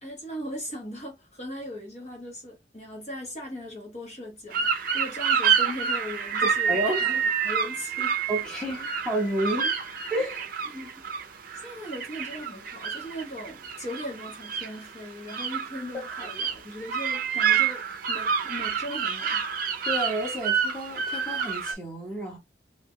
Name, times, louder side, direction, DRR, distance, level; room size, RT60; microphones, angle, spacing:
voice 1, 0.0-8.2 8.8-8.9 10.7-11.1 11.5-19.5, left 1 dB, 40° left, 1.0 m, -39 dB
sound 1, 4.5-21.7, right 7 dB, 50° right, 0.5 m, -28 dB
voice 2, 6.4-7.2 8.3-9.7 10.1-10.5 19.8-22.4, right 1 dB, 5° left, 1.4 m, -30 dB
3.3 x 2.9 x 2.2 m
head